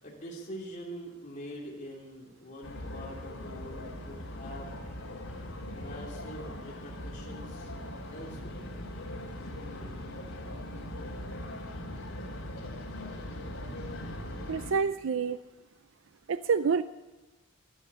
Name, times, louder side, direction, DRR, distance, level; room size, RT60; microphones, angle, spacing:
voice 1, 0.0-4.7 5.7-7.7 8.1-8.7, equal, 35° left, -2 dB, 3.0 m, -44 dB
sound 1, 2.6-14.7, left 1 dB, 85° left, 2.8 m, -40 dB
voice 2, 14.5-15.4 16.3-16.8, right 5 dB, 75° right, 13 dB, 0.5 m, -27 dB
12.5 x 11.5 x 9.7 m, 1.1 s
head